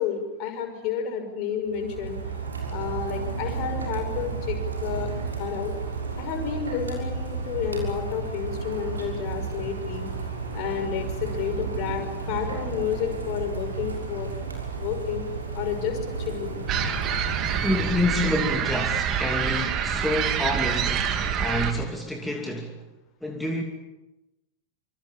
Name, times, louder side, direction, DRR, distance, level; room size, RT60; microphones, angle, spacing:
voice 1, 0.0-2.2 2.7-5.1 5.4-5.7 6.2-10.1 10.5-14.3 14.8-15.2 15.5-16.6, left 8 dB, 40° left, 5.9 m, -30 dB
Rain, 1.6-18.9, right 4 dB, 75° right, 6.4 m, -33 dB
sound 1, 16.7-21.7, right 8 dB, 35° right, 2.8 m, -26 dB
voice 2, 17.6-22.8 23.2-23.6, left 1 dB, 5° left, 2.8 m, -28 dB
26.5 x 26.0 x 7.1 m
figure-of-eight pair, 90°, 0 cm